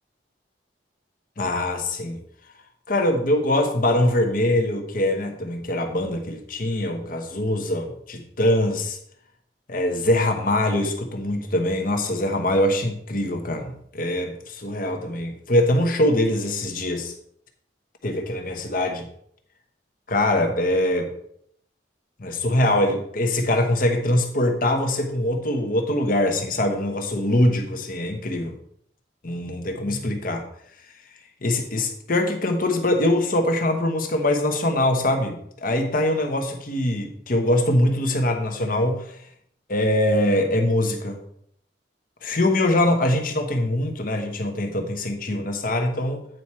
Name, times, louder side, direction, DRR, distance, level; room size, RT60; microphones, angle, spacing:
voice 1, 1.4-2.2 2.9-9.0 9.7-17.1 18.0-19.1 20.1-21.1 22.2-28.5 29.2-30.4 31.4-39.2 39.7-41.2 42.2-46.3, left 1 dB, 55° left, 4 dB, 1.1 m, -23 dB
9.2 x 4.7 x 4.4 m, 0.68 s
head